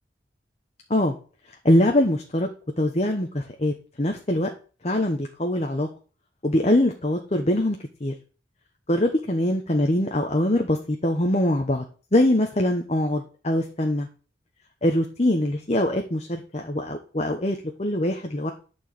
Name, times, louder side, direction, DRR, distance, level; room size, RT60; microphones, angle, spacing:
voice 1, 1.6-2.5 2.8-4.5 4.8-5.9 6.4-8.1 8.9-11.8 12.1-14.1 14.8-18.5, left 1 dB, 35° left, 4 dB, 1.0 m, -23 dB
11.5 x 4.7 x 7.7 m, 0.38 s
head